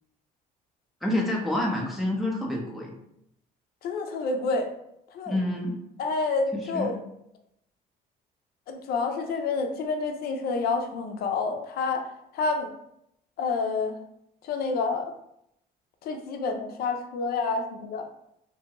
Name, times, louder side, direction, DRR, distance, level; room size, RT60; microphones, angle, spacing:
voice 1, 1.0-3.0 5.3-5.8 6.5-7.0, left 1 dB, ahead, -2 dB, 0.5 m, -28 dB
voice 2, 3.8-4.7 5.1-5.4 6.0-7.0 8.7-12.1 12.3-12.7 13.4-14.0 14.4-15.1 16.0-18.0, left 4 dB, 65° left, 5 dB, 0.5 m, -28 dB
2.6 x 2.5 x 2.9 m, 0.77 s
cardioid pair, 110°, 17 cm